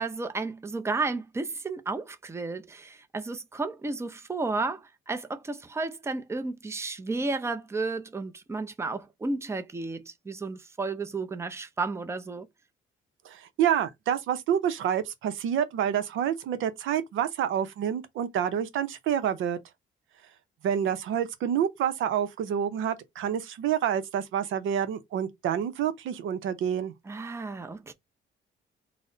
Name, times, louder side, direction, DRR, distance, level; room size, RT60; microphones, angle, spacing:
voice 1, 0.0-12.5 27.1-27.9, right 3 dB, 15° right, 0.5 m, -32 dB
voice 2, 13.2-19.6 20.6-26.9, right 9 dB, 80° right, 0.7 m, -28 dB
4.0 x 2.1 x 3.8 m
cardioid pair, 90°, 20 cm